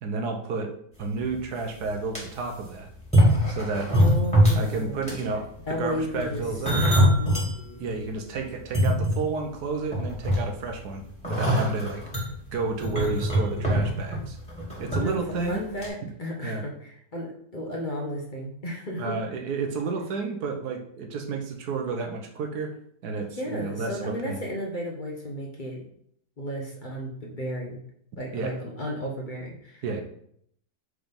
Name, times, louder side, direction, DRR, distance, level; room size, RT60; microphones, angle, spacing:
voice 1, 0.0-0.7 1.0-2.9 3.5-3.9 4.6-5.5 5.8-6.8 7.8-12.0 12.5-14.4 14.8-15.6 16.4-16.6 19.0-22.7 23.0-24.4 28.3-28.5 29.8-30.0, right 4 dB, 85° right, 4 dB, 1.4 m, -31 dB
sound 1, 1.3-1.4 1.8-2.2 3.0-4.7 5.0-5.3 6.2-7.5 8.0-8.1 8.6-9.6 9.9-10.7 11.2-15.0 15.3-15.5 15.8-15.9, equal, 5° left, 2.1 m, -23 dB
voice 2, 3.9-5.3 5.6-6.4 7.2-7.9 14.9-15.2 15.5-19.2 23.3-25.8 26.4-27.8 28.2-29.8, equal, 35° left, -1 dB, 1.1 m, -33 dB
4.7 x 3.9 x 5.2 m, 0.68 s
omnidirectional pair, 1.7 m